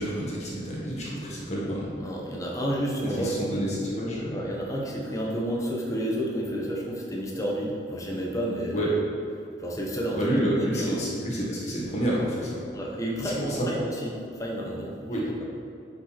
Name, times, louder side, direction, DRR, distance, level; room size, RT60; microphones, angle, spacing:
voice 1, 0.0-1.9 3.0-4.4 8.7-8.9 10.1-12.6 13.2-13.7 15.1-15.3, equal, 35° left, -5 dB, 1.9 m, -29 dB
voice 2, 2.0-3.6 4.3-8.9 9.6-11.0 12.7-15.5, equal, 20° left, -2 dB, 1.2 m, -31 dB
10.0 x 5.5 x 4.4 m, 2.5 s
head